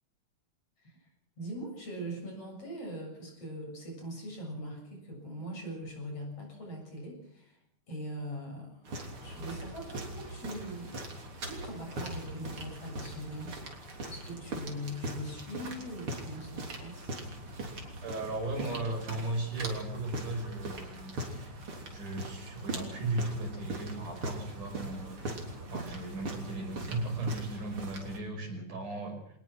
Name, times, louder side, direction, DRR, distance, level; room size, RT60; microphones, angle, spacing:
voice 1, 1.4-7.6 7.9-11.0 11.4-13.6 14.0-17.1, equal, 50° left, 1 dB, 8.2 m, -41 dB
sound 1, 8.9-28.2, right 1 dB, 45° right, 4.2 m, -41 dB
voice 2, 18.0-21.6 21.9-25.3 25.7-29.2, right 2 dB, 85° right, 3 dB, 7.1 m, -36 dB
25.5 x 19.0 x 6.2 m, 0.73 s
omnidirectional pair, 3.5 m